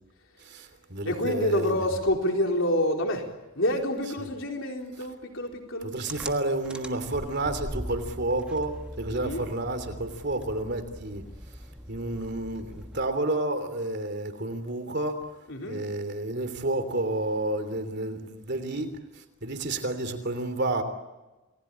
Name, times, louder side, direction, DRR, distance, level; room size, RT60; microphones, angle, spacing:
voice 1, 0.4-1.8 5.8-11.2 11.9-15.2 15.7-18.9 19.1-20.8, right 2 dB, 50° right, 3.2 m, -30 dB
voice 2, 1.0-3.3 3.6-5.9 9.1-9.5 15.5-15.8, left 1 dB, 60° left, 4.1 m, -27 dB
sound 1, 6.1-13.2, equal, 5° right, 1.4 m, -41 dB
29.0 x 20.0 x 8.8 m
head